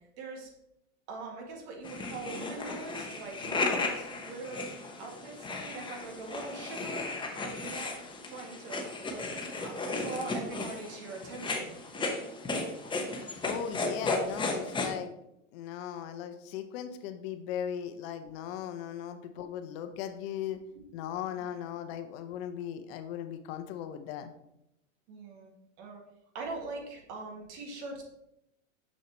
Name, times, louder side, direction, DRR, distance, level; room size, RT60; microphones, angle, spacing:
voice 1, 0.2-0.5 1.1-4.7 5.0-7.1 7.4-8.0 8.2-9.3 9.6-11.8 21.3-21.6 25.1-25.5 25.8-26.0 26.3-28.0, right 3 dB, 60° right, 1 dB, 2.0 m, -42 dB
sound 1, 1.8-14.9, left 3 dB, 10° left, 1.1 m, -35 dB
voice 2, 13.2-15.1 15.5-20.6 20.9-24.3, left 9 dB, 50° left, 8 dB, 0.8 m, -38 dB
6.5 x 6.3 x 3.0 m, 0.81 s
hypercardioid pair, 105°, 38 cm